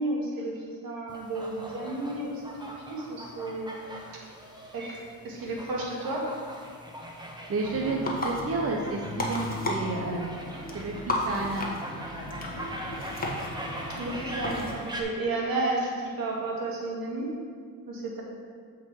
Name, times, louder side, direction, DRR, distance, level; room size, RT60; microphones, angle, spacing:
voice 1, 0.0-2.4 2.9-3.9 4.7-6.3 12.5-12.6 13.9-17.3 17.9-18.2, right 2 dB, 65° right, -2 dB, 1.9 m, -32 dB
sound 1, 1.1-15.0, equal, 10° right, 1.2 m, -41 dB
voice 2, 7.5-10.3 10.7-11.7, right 3 dB, 40° right, 0 dB, 0.9 m, -31 dB
sound 2, 7.6-14.7, left 1 dB, 25° left, 1.4 m, -34 dB
7.9 x 4.7 x 4.8 m, 2.1 s
cardioid pair, 80°, 37 cm